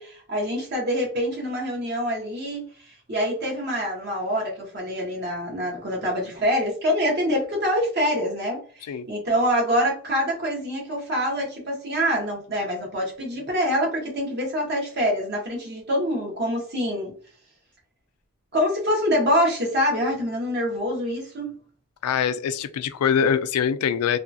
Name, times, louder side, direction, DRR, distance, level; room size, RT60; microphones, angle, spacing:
voice 1, 0.0-17.1 18.5-21.6, equal, 45° right, 1.1 m, -25 dB
voice 2, 22.0-24.2, left 7 dB, 90° left, 0.3 m, -23 dB
2.8 x 2.4 x 2.6 m
head